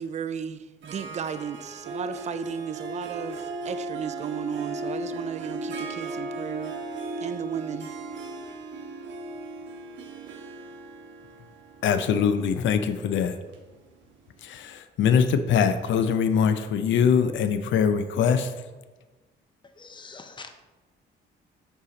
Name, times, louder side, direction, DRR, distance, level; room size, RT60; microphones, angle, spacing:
voice 1, 0.0-6.7 7.2-7.9, right 7 dB, 35° right, 12 dB, 0.4 m, -34 dB
Harp, 0.8-14.4, right 2 dB, 70° right, 1.1 m, -37 dB
voice 2, 11.8-13.4 14.4-18.5, left 7 dB, 70° left, 10 dB, 0.5 m, -23 dB
voice 3, 19.8-20.6, left 4 dB, 25° left, 7 dB, 0.6 m, -44 dB
5.6 x 4.8 x 3.9 m, 1.2 s
cardioid pair, 90°, 20 cm